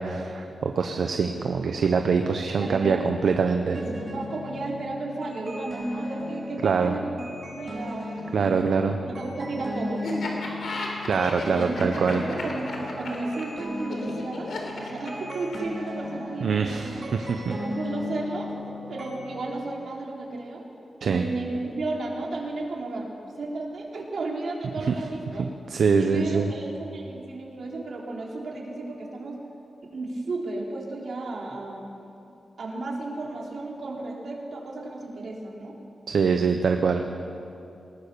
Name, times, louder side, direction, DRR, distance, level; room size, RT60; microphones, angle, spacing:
voice 1, 0.0-3.8 6.6-6.9 8.3-9.0 11.0-12.2 16.4-17.5 21.0-21.3 24.9-25.0 25.4-26.5 36.1-37.1, right 5 dB, 75° right, 5 dB, 1.0 m, -24 dB
voice 2, 2.6-3.1 3.7-7.2 7.5-10.2 11.4-17.0 17.5-20.6 21.0-23.1 23.4-25.5 26.0-29.4 29.9-31.9 32.6-35.8, right 2 dB, 60° right, -2 dB, 3.8 m, -33 dB
sound 1, 3.7-19.5, left 2 dB, 40° right, 5.4 m, -37 dB
Laughter, 10.0-15.8, left 2 dB, 75° left, 4.0 m, -34 dB
20.5 x 19.5 x 6.9 m, 2.7 s
wide cardioid pair, 155°, 0 cm